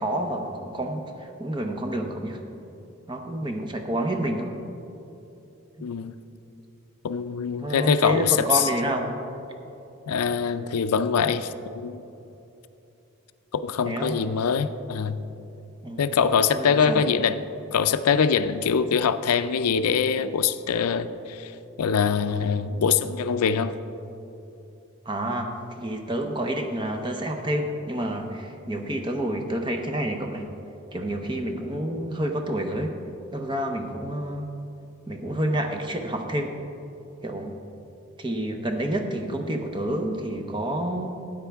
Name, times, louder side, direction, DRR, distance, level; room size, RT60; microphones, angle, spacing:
voice 1, 0.0-2.4 3.1-4.5 7.6-9.1 13.8-14.2 15.8-16.1 16.5-17.0 25.1-30.4 30.9-32.9 33.3-34.5 35.1-36.5 37.2-37.5 38.2-41.1, right 1 dB, 20° right, 4 dB, 0.7 m, -29 dB
voice 2, 5.8-6.1 7.0-8.7 10.1-12.0 13.5-15.2 16.0-17.4 17.7-21.5 21.8-23.7, left 6 dB, 85° left, 12 dB, 0.4 m, -23 dB
13.0 x 9.0 x 3.4 m, 2.9 s
head